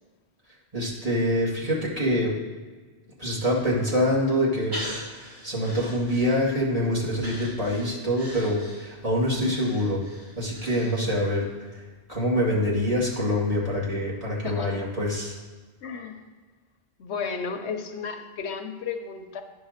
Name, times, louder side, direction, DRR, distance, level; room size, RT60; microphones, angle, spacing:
voice 1, 0.7-2.3 3.2-4.8 5.1-10.0 10.4-11.5 12.1-15.4, equal, 35° right, -5 dB, 2.1 m, -25 dB
Breathing, 4.7-6.7 7.2-11.4 11.7-11.8, equal, 70° right, 3.0 m, -40 dB
voice 2, 14.4-14.8 15.8-16.3 17.0-19.4, left 5 dB, 85° left, 6 dB, 1.1 m, -33 dB
9.7 x 3.9 x 6.4 m, 1.5 s
omnidirectional pair, 1.1 m